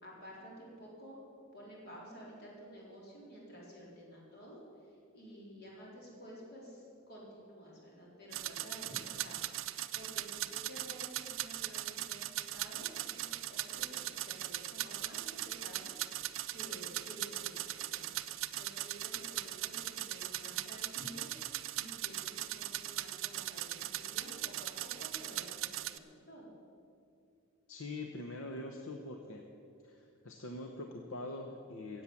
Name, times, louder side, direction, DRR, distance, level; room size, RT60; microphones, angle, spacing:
voice 1, 0.0-1.2 1.5-4.6 5.1-9.3 9.7-15.9 16.1-18.0 18.6-21.3 21.7-26.5, equal, 50° left, -4 dB, 4.0 m, -52 dB
sound 1, 8.3-26.0, right 14 dB, 65° right, 0.5 m, -39 dB
voice 2, 27.7-29.5 29.8-32.0, left 2 dB, 70° left, 3 dB, 0.9 m, -43 dB
16.0 x 8.0 x 7.2 m, 2.5 s
head